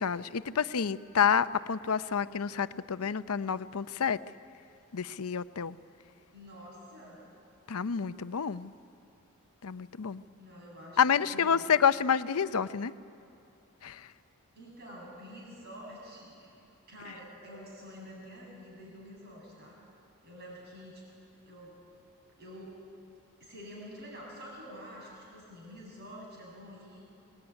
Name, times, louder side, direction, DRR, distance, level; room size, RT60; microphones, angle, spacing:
voice 1, 0.0-4.2 4.9-5.8 7.7-8.7 9.6-10.2 11.0-12.9 13.8-14.1, left 7 dB, 90° left, 13 dB, 0.7 m, -28 dB
voice 2, 6.3-7.2 10.4-11.7 14.5-16.5 16.9-19.8 20.2-21.1 21.5-21.8 22.4-22.9 23.4-27.0, equal, 45° right, -2 dB, 7.9 m, -48 dB
25.5 x 20.0 x 9.8 m, 2.9 s
head